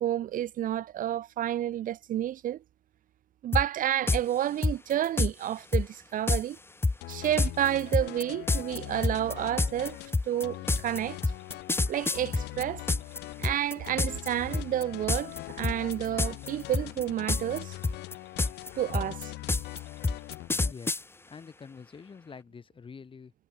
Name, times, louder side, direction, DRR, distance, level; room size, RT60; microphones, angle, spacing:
voice 1, 0.0-2.6 3.4-6.6 7.1-10.0 10.3-11.2 11.9-12.8 13.4-17.8 18.8-19.3, right 12 dB, 55° right, 0.6 m, -30 dB
sound 1, 3.5-3.6 4.1-4.2 4.6-5.3 5.7-5.9 6.3-6.4 6.8-13.2 13.4-14.3 14.5-14.8 15.1-15.4 15.6-16.5 16.7-17.6 17.8-21.0, left 3 dB, 15° left, 1.1 m, -27 dB
sound 2, 7.0-20.7, left 18 dB, 85° left, 1.2 m, -42 dB
voice 2, 20.7-23.3, left 5 dB, 30° left, 3.2 m, -47 dB
cardioid pair, 110°, 17 cm